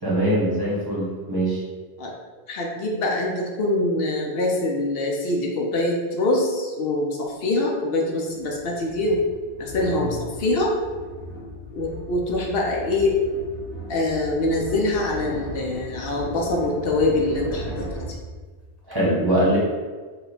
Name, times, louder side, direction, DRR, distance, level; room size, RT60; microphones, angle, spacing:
voice 1, 0.0-1.6 18.9-19.6, right 1 dB, 25° right, -8 dB, 0.9 m, -22 dB
voice 2, 2.5-9.2 9.6-10.7 11.7-13.2 13.9-18.1, left 2 dB, 70° left, -1 dB, 0.8 m, -24 dB
sound 1, 7.3-7.4 8.3-18.9, equal, 10° left, 1.2 m, -36 dB
3.1 x 2.2 x 4.1 m, 1.4 s
omnidirectional pair, 1.1 m